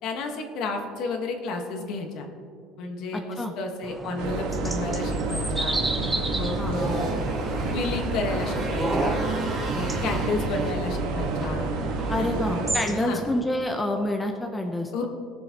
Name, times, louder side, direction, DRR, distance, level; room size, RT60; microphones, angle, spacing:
voice 1, 0.0-2.3 2.8-5.8 6.3-7.1 7.7-9.2 9.7-11.7 12.2-13.2 14.9-15.1, left 3 dB, 55° left, 4 dB, 1.3 m, -32 dB
voice 2, 3.1-3.5 6.6-6.7 10.1-10.2 12.1-15.1, left 1 dB, 10° left, 3 dB, 0.6 m, -28 dB
sound 1, 3.8-13.4, right 2 dB, 10° right, 0.9 m, -32 dB
sound 2, 4.2-12.7, right 3 dB, 80° right, 1.4 m, -29 dB
Motorcycle, 6.4-13.0, right 2 dB, 30° right, 2.6 m, -39 dB
18.5 x 6.9 x 2.9 m, 2.4 s
cardioid pair, 150°, 0 cm